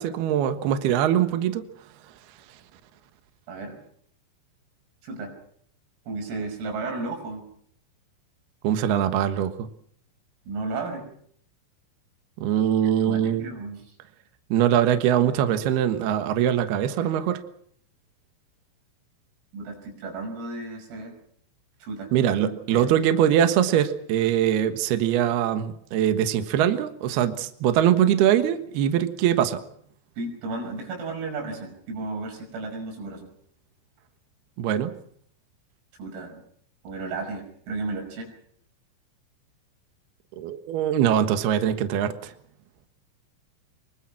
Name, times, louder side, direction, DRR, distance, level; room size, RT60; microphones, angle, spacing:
voice 1, 0.0-1.7 8.6-9.7 12.4-13.5 14.5-17.4 22.1-29.6 34.6-34.9 40.4-42.3, right 10 dB, 65° right, 9 dB, 2.9 m, -22 dB
voice 2, 3.5-3.8 5.0-5.3 6.1-7.5 10.5-11.1 13.0-13.8 19.5-21.1 21.8-22.9 30.2-33.3 36.0-36.4 36.8-38.3, right 3 dB, 85° right, 4 dB, 8.5 m, -34 dB
25.0 x 23.0 x 6.0 m, 0.63 s
omnidirectional pair, 5.9 m